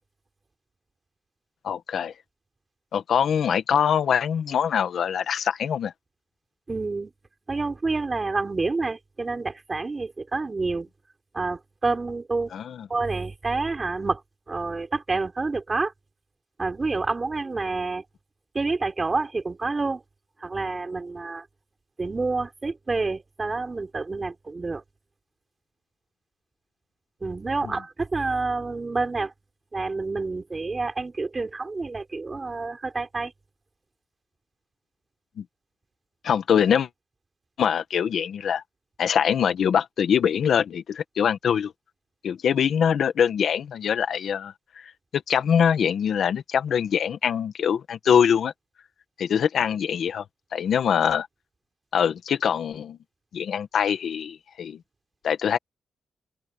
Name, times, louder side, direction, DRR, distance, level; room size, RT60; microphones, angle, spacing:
voice 1, 1.6-2.1 2.9-5.9 12.5-12.9 27.6-27.7 35.4-35.5 36.2-36.9 37.6-38.6 39.0-41.7 42.2-44.5 45.1-48.5 49.2-50.2 50.5-51.3 51.9-53.0 53.3-54.8 55.2-55.6, left 8 dB, 75° left, 1.7 m, -23 dB
voice 2, 6.7-7.1 7.5-10.9 11.3-12.5 12.9-14.2 14.5-15.9 16.6-18.0 18.5-20.0 20.4-21.4 22.0-24.8 27.2-29.3 29.7-33.3, right 3 dB, 30° right, 4.1 m, -28 dB
open air
cardioid pair, 85°, 0 cm